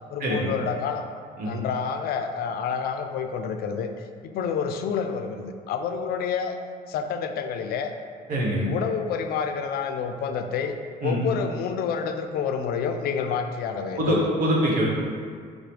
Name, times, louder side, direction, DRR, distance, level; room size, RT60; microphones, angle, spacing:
voice 1, 0.1-1.0 1.4-6.5 6.9-7.9 8.7-10.7 11.0-14.3, left 6 dB, 65° left, 7 dB, 0.4 m, -28 dB
voice 2, 8.3-8.7 11.0-11.2 14.0-14.8, equal, 55° right, -3 dB, 1.1 m, -24 dB
5.0 x 2.1 x 4.5 m, 2.1 s
cardioid pair, 110°, 17 cm